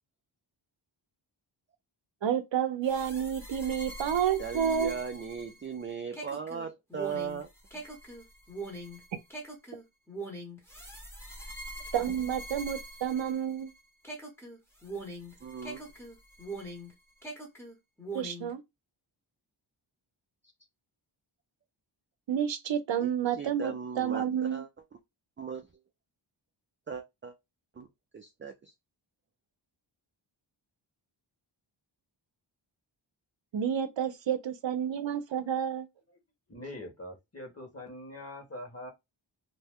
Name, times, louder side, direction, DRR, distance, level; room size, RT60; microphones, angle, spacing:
voice 1, 2.2-4.9 11.9-13.7 18.1-18.6 22.3-24.6 33.5-35.9, right 8 dB, 65° right, 0.6 m, -30 dB
sound 1, 2.8-13.7 14.0-16.9 17.2-18.5, right 1 dB, 5° left, 1.0 m, -43 dB
voice 2, 4.4-7.8 15.4-15.8 23.0-24.7 25.4-25.7 26.9-27.3 27.7-27.9 28.1-28.7, right 6 dB, 25° right, 0.4 m, -38 dB
voice 3, 36.5-38.9, left 1 dB, 30° left, 1.4 m, -43 dB
2.7 x 2.1 x 3.5 m
wide cardioid pair, 85°, 48 cm